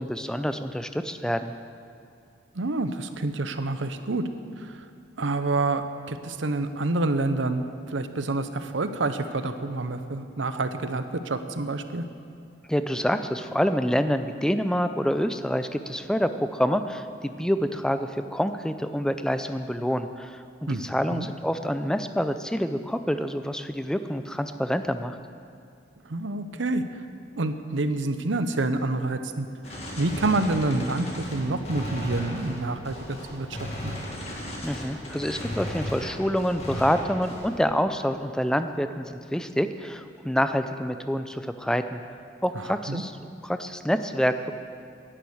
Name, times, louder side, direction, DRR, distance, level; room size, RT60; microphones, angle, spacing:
voice 1, 0.0-1.5 12.7-20.4 20.8-25.2 34.6-42.0 42.4-44.5, equal, 5° left, 9 dB, 0.4 m, -27 dB
voice 2, 2.5-4.2 4.6-4.8 5.2-12.0 20.7-21.3 26.0-26.9 27.4-33.9 42.5-43.0, right 2 dB, 90° right, 10 dB, 0.8 m, -28 dB
Gunshot gunfire, 29.6-37.6, left 1 dB, 35° left, 2.1 m, -36 dB
11.0 x 10.0 x 7.9 m, 2.4 s
head